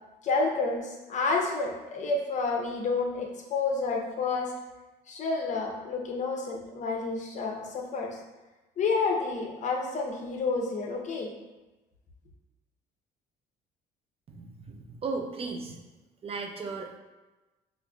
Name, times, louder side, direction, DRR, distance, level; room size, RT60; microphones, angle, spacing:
voice 1, 0.2-4.5 5.1-8.2 8.8-11.3, left 3 dB, 45° left, 0 dB, 0.7 m, -29 dB
voice 2, 14.3-15.8 16.2-17.0, right 4 dB, 35° right, 2 dB, 0.4 m, -36 dB
5.2 x 2.5 x 2.3 m, 1.1 s
cardioid pair, 110°, 17 cm